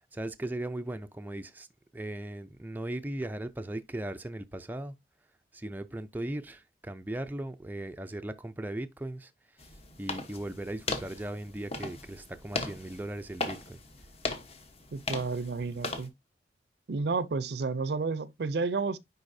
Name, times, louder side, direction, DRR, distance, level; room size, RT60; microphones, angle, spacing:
voice 1, 0.0-1.7 1.9-5.0 5.5-9.3 9.6-9.7 10.0-13.8, right 1 dB, 10° right, 0.4 m, -38 dB
sound 1, 9.6-16.1, left 3 dB, 35° left, 1.0 m, -38 dB
voice 2, 14.9-16.1 16.9-19.0, right 4 dB, 65° right, 0.5 m, -31 dB
9.9 x 4.0 x 2.6 m
head